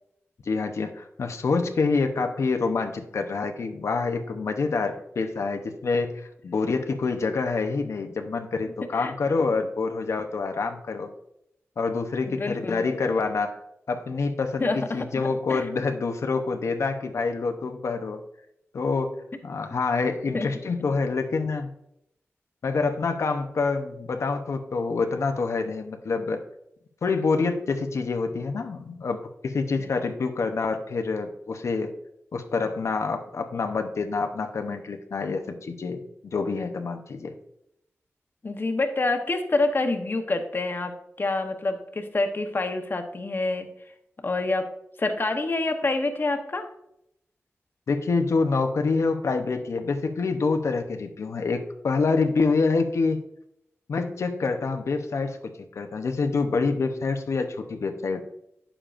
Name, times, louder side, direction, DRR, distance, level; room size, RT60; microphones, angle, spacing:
voice 1, 0.4-11.1 11.8-13.6 13.9-18.2 18.7-19.1 19.4-21.7 22.6-26.4 27.0-31.9 32.3-37.3 47.9-53.2 53.9-58.2, left 4 dB, 80° left, 6 dB, 0.7 m, -27 dB
voice 2, 8.6-9.1 12.3-12.8 14.6-15.0 15.5-15.6 20.3-20.5 38.4-43.7 44.2-44.7 45.0-46.6, left 2 dB, 45° left, 6 dB, 0.9 m, -27 dB
8.7 x 7.0 x 2.5 m, 0.79 s
cardioid pair, 60°, 5 cm